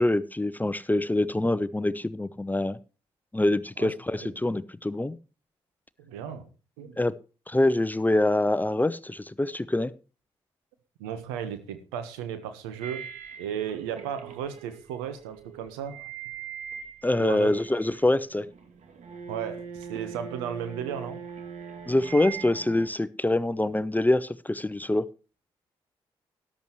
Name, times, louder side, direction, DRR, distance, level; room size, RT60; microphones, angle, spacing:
voice 1, 0.0-2.8 3.3-5.2 7.0-7.1 7.5-9.9 17.0-18.5 21.9-25.0, left 1 dB, 15° left, 17 dB, 0.6 m, -25 dB
voice 2, 6.0-6.4 6.8-7.0 11.0-13.0 13.4-16.1 17.2-17.5 19.3-21.2, right 9 dB, 85° right, 10 dB, 1.2 m, -35 dB
sound 1, 12.8-18.1 18.4-22.9, right 7 dB, 65° right, 2.0 m, -41 dB
13.5 x 11.5 x 3.1 m, 0.34 s
hypercardioid pair, 40°, 13 cm